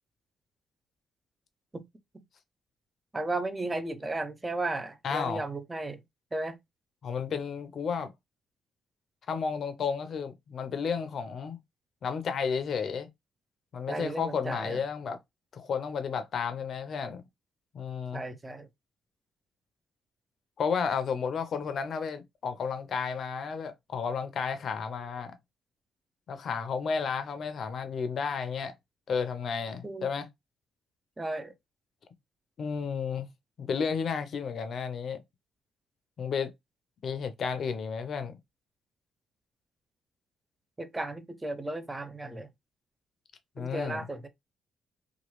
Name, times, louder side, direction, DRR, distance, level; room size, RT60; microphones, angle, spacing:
voice 1, 3.1-6.0 6.3-6.6 13.9-14.8 18.1-18.7 29.8-30.1 31.2-31.5 40.8-42.5 43.6-44.3, right 2 dB, 15° right, 0.5 m, -34 dB
voice 2, 5.0-5.4 7.0-8.1 9.3-11.6 12.0-13.1 13.7-15.2 15.5-17.2 17.7-18.2 20.6-25.3 26.3-28.7 29.1-30.3 32.6-33.3 33.6-35.2 36.2-36.5 37.0-38.3 43.6-44.1, left 6 dB, 55° left, 0.6 m, -32 dB
3.0 x 2.3 x 3.0 m
cardioid pair, 90°, 0 cm